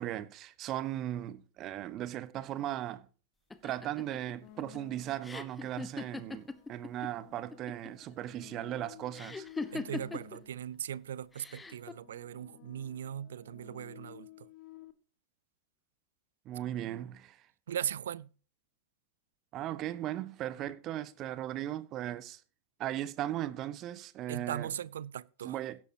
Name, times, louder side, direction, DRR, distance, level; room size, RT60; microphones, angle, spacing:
voice 1, 0.0-3.0 3.6-9.5 16.4-17.4 19.5-22.4 22.8-24.7 25.4-25.8, right 13 dB, 35° right, 1.2 m, -37 dB
sound 1, 3.5-7.1 7.4-8.0 9.1-10.4 11.3-11.9, left 3 dB, 10° left, 1.3 m, -40 dB
sound 2, 4.4-5.5 6.3-10.8 11.5-14.9, left 15 dB, 40° left, 1.7 m, -55 dB
voice 2, 9.7-14.5 17.7-18.3 24.3-25.5, right 10 dB, 60° right, 0.5 m, -39 dB
16.5 x 12.0 x 2.9 m
figure-of-eight pair, 90°, 0 cm